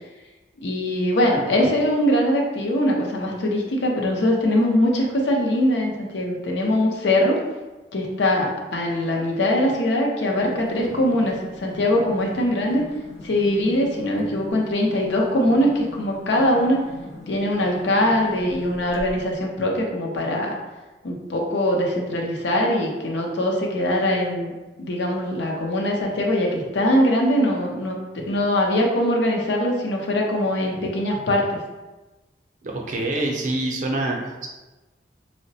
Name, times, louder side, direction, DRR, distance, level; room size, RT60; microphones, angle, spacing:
voice 1, 0.6-7.4 7.9-12.8 13.2-16.8 17.3-20.6 21.0-24.5 24.8-28.0 28.3-31.4, left 1 dB, 80° left, 0 dB, 0.6 m, -22 dB
sound 1, 10.2-19.4, left 1 dB, 40° left, 0.5 m, -41 dB
voice 2, 32.6-34.5, right 2 dB, 45° right, 0 dB, 0.4 m, -26 dB
3.8 x 2.1 x 2.7 m, 1.1 s
head